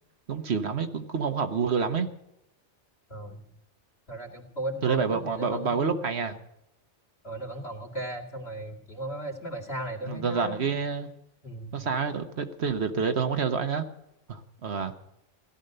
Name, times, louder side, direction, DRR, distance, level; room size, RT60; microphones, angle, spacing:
voice 1, 0.3-2.1 4.8-6.4 10.1-11.1 11.7-13.8 14.3-14.9, right 5 dB, 60° right, 1.3 m, -28 dB
voice 2, 3.1-3.4 4.1-6.1 7.2-10.7 11.4-11.8, right 1 dB, 55° left, 2.7 m, -36 dB
16.5 x 12.0 x 6.7 m
omnidirectional pair, 1.2 m